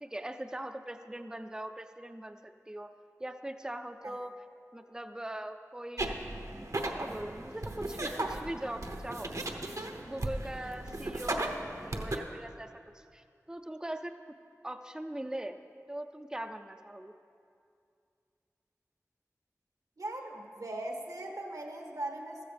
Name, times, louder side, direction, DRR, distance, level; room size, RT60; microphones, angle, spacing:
voice 1, 0.0-2.9 3.2-4.3 4.7-6.1 6.9-9.3 10.0-12.7 12.9-14.1 14.6-15.6 15.9-17.1, right 1 dB, 10° right, 6 dB, 0.5 m, -41 dB
sound 1, 6.0-12.2, right 1 dB, 65° right, 1.0 m, -36 dB
voice 2, 20.0-22.5, right 1 dB, 85° right, 1 dB, 1.5 m, -39 dB
15.0 x 13.0 x 3.4 m, 2.4 s
wide cardioid pair, 40°, 6 cm